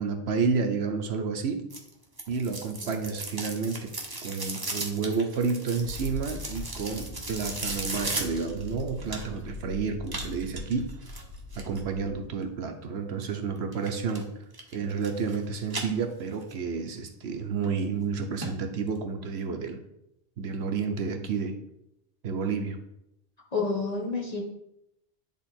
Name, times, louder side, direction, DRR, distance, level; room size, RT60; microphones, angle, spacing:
voice 1, 0.0-1.6 2.3-3.9 4.2-10.9 11.6-14.3 14.7-19.8 20.4-21.5 22.2-22.8, right 5 dB, 75° right, 5 dB, 1.0 m, -30 dB
sound 1, 1.7-9.5 10.1-11.8 13.7-14.2 14.5-15.4 15.7-16.5 16.9-17.0 17.6-17.7 18.0-18.1 18.4-18.5 18.9-19.0, right 2 dB, 20° right, 0.9 m, -36 dB
sound 2, 5.8-12.2, left 3 dB, 70° left, 1.8 m, -41 dB
voice 2, 23.5-24.4, left 4 dB, 35° left, -2 dB, 1.5 m, -29 dB
9.8 x 3.5 x 4.3 m, 0.83 s
omnidirectional pair, 1.1 m